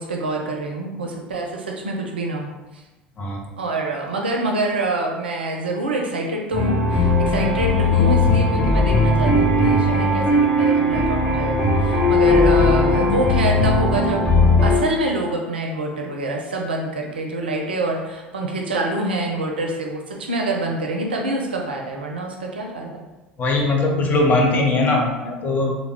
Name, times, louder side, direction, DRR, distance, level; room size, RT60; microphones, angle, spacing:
voice 1, 0.0-2.8 3.6-14.3 14.6-23.1, right 2 dB, 75° right, 1 dB, 0.4 m, -26 dB
sound 1, 6.5-14.8, left 2 dB, 15° left, 1.3 m, -18 dB
voice 2, 23.4-25.8, left 2 dB, 30° left, 1 dB, 0.6 m, -20 dB
3.3 x 2.0 x 3.4 m, 1.1 s
figure-of-eight pair, 65°, 6 cm